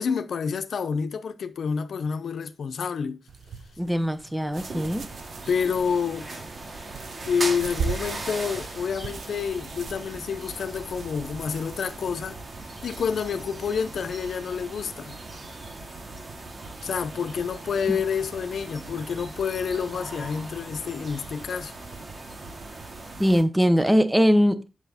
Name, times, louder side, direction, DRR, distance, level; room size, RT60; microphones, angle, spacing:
voice 1, 0.0-3.2 5.5-6.3 7.3-12.4 12.8-15.2 16.8-21.7, left 6 dB, 85° left, 0.7 m, -28 dB
sound 1, 3.3-13.1, right 6 dB, 80° right, 0.8 m, -40 dB
voice 2, 3.8-5.0 17.9-18.0 23.2-24.7, equal, 10° right, 0.9 m, -21 dB
sound 2, 4.6-23.4, right 2 dB, 55° right, 2.1 m, -39 dB
8.2 x 6.3 x 4.1 m
wide cardioid pair, 110°, 0 cm